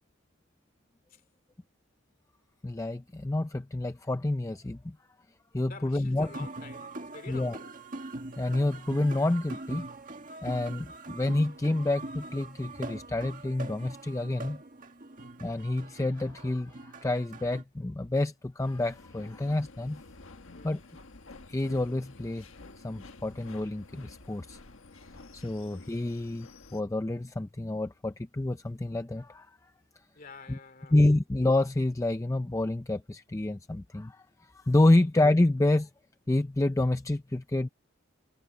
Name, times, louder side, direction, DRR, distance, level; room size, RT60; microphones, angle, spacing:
voice 1, 2.6-5.0 5.5-6.3 7.3-7.6 8.4-9.9 10.4-14.6 15.4-20.0 20.6-20.8 21.5-22.4 22.8-24.6 25.3-29.6 30.5-30.6 30.9-35.9 36.3-37.7, left 2 dB, 15° left, 0.4 m, -28 dB
voice 2, 5.7-7.7 15.1-15.3 20.5-20.8 30.1-31.0 34.9-35.2, left 3 dB, 40° left, 2.6 m, -49 dB
sound 1, 6.2-17.6, right 2 dB, 40° right, 1.7 m, -43 dB
sound 2, 18.6-26.8, left 3 dB, 70° left, 1.5 m, -50 dB
head